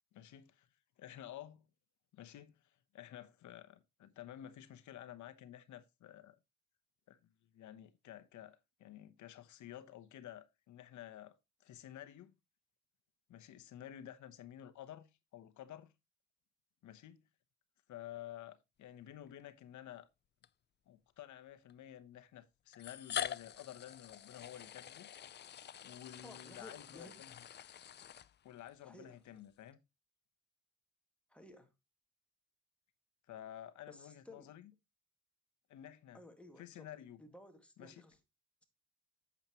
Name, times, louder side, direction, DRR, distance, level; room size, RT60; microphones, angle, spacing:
voice 1, 0.1-0.7 1.0-1.7 2.1-6.4 7.1-7.2 7.5-12.4 13.3-15.9 16.8-17.2 17.9-20.1 20.9-25.1 25.8-27.4 28.4-29.8 33.3-34.7 35.7-36.2 36.6-37.2 37.8-38.0, left 11 dB, 70° left, 1.0 m, -52 dB
sound 1, 19.3-19.4 20.4-20.5 21.7-21.8 22.7-28.7, left 10 dB, 35° left, 0.4 m, -45 dB
voice 2, 26.2-27.1 28.8-29.2 31.3-31.7 33.9-34.6 36.1-36.9 37.2-38.2, left 1 dB, 5° left, 2.0 m, -56 dB
8.8 x 7.4 x 2.9 m
cardioid pair, 90°, 30 cm